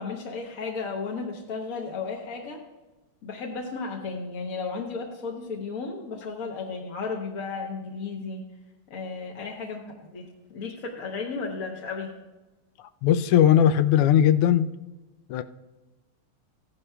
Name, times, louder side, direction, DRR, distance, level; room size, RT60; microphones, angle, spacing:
voice 1, 0.0-2.6 3.2-8.4 8.9-12.1, left 4 dB, 55° left, 0 dB, 1.1 m, -34 dB
voice 2, 13.0-14.7 15.3-15.4, left 10 dB, 90° left, 10 dB, 1.5 m, -19 dB
15.0 x 11.0 x 2.3 m, 1.1 s
omnidirectional pair, 2.4 m